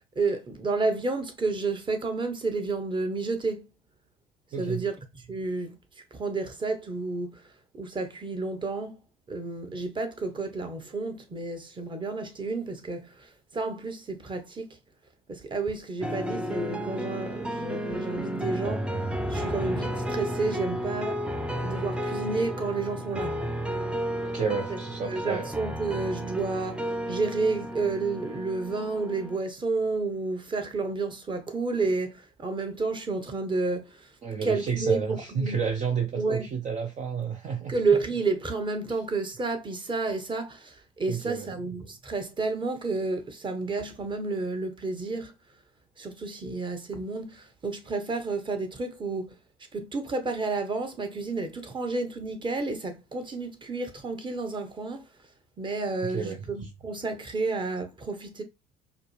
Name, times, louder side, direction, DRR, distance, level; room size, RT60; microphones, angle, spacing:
voice 1, 0.1-3.7 4.6-5.8 6.1-7.4 7.7-9.0 9.3-14.8 15.3-18.9 19.3-21.2 21.6-23.4 24.7-24.8 25.1-34.1 34.4-35.6 36.2-36.5 37.7-45.3 46.0-49.4 49.7-55.0 55.6-58.4, right 3 dB, 25° right, 1.2 m, -31 dB
voice 2, 4.5-4.8 24.2-25.5 34.2-37.7 41.1-41.5 56.1-56.7, right 6 dB, 45° right, 0.8 m, -31 dB
sound 1, 16.0-29.4, equal, 5° right, 0.6 m, -32 dB
4.8 x 2.2 x 3.2 m
hypercardioid pair, 70°, 18 cm